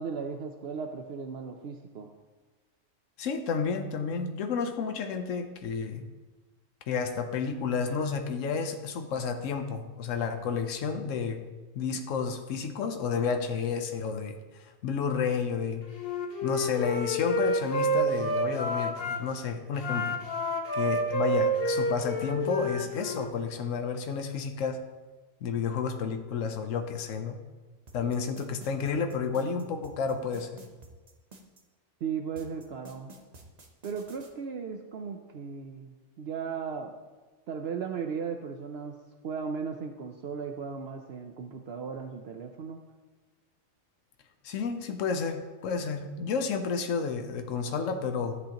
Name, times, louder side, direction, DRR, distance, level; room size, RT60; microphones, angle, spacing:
voice 1, 0.0-2.1 32.0-33.1 33.8-36.9 37.5-39.0 39.2-42.8, right 6 dB, 60° right, 4 dB, 0.8 m, -36 dB
voice 2, 3.2-6.1 6.9-11.4 11.7-14.4 14.8-15.8 16.4-20.2 20.7-24.8 25.4-27.4 27.9-30.5 44.4-48.4, left 5 dB, 75° left, 6 dB, 1.1 m, -31 dB
Wind instrument woodwind instrument, 15.9-19.2 19.7-23.3, equal, 50° left, 1.1 m, -29 dB
sound 1, 27.9-31.6 32.4-34.3, right 3 dB, 35° right, 1.0 m, -51 dB
13.0 x 8.3 x 2.9 m, 1.3 s
omnidirectional pair, 1.3 m